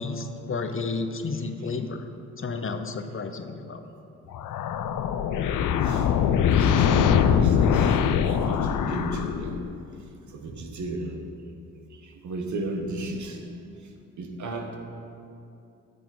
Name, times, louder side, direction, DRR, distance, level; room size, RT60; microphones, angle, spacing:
voice 1, 0.0-2.1 2.4-3.8, left 4 dB, 35° left, 7 dB, 0.9 m, -31 dB
voice 2, 1.3-1.7 5.8-6.1 6.5-9.6 10.3-11.2 11.9-13.4 13.8-13.9 14.2-14.7, right 2 dB, 55° right, 3 dB, 1.5 m, -34 dB
sound 1, 4.3-9.8, left 8 dB, 60° left, 0.7 m, -22 dB
13.5 x 6.8 x 4.0 m, 2.6 s
hypercardioid pair, 45°, 35 cm